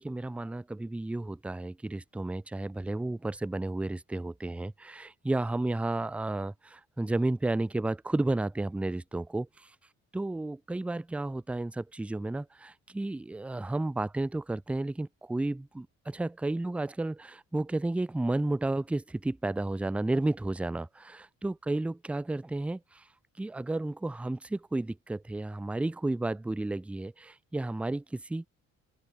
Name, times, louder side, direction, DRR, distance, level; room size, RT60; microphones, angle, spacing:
voice 1, 0.0-9.5 10.1-23.0 23.4-28.5, right 2 dB, 5° right, 0.4 m, -32 dB
open air
cardioid pair, 90°, 30 cm